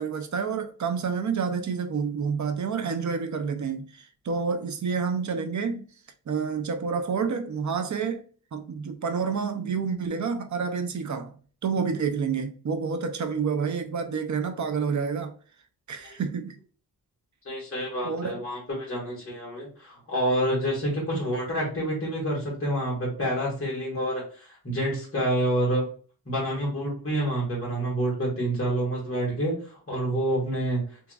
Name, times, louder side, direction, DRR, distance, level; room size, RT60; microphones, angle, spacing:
voice 1, 0.0-5.8 6.3-8.2 8.5-11.3 11.6-15.3 15.9-16.6 18.0-18.4, right 5 dB, 50° right, 0.5 m, -29 dB
voice 2, 17.4-25.9 26.2-30.8, right 1 dB, 35° left, 1.6 m, -28 dB
3.5 x 2.9 x 2.2 m
wide cardioid pair, 140°, 39 cm